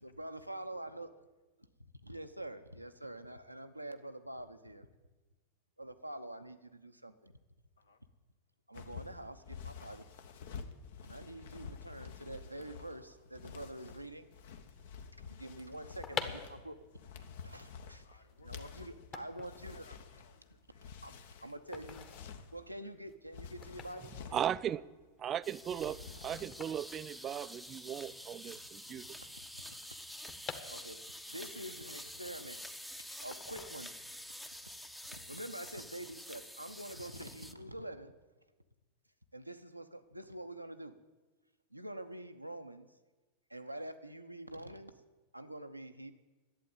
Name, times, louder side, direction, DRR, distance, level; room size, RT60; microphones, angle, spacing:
voice 1, 0.0-1.1 2.0-4.9 5.8-7.3 8.7-10.1 11.0-14.3 15.2-16.8 17.4-19.9 21.0-21.1 21.4-22.1 22.5-24.4 28.5-28.6 29.2-29.3 29.7-29.8 30.7-31.0 31.3-32.6 33.1-33.9 35.1-38.1 39.3-40.9 41.7-42.9 43.5-44.9 45.3-46.1, right 1 dB, 85° right, 0.8 m, -46 dB
sound 1, 8.7-22.7 23.2-24.5 25.6-26.7 27.0-27.3, left 6 dB, 55° left, 1.0 m, -50 dB
sound 2, 16.0-27.9 28.2-28.3 28.4-31.3 31.7-32.8 33.3-34.3 34.7-34.9, left 5 dB, 30° left, 1.2 m, -47 dB
voice 2, 18.0-20.9 22.8-22.9 25.2-26.6 37.0-37.1, left 4 dB, 75° left, 1.2 m, -63 dB
voice 3, 24.3-24.8 25.2-29.0, right 10 dB, 30° right, 0.4 m, -37 dB
sound 3, 25.4-37.5, left 1 dB, 5° left, 0.7 m, -48 dB
11.5 x 8.5 x 9.0 m
figure-of-eight pair, 90°, 0 cm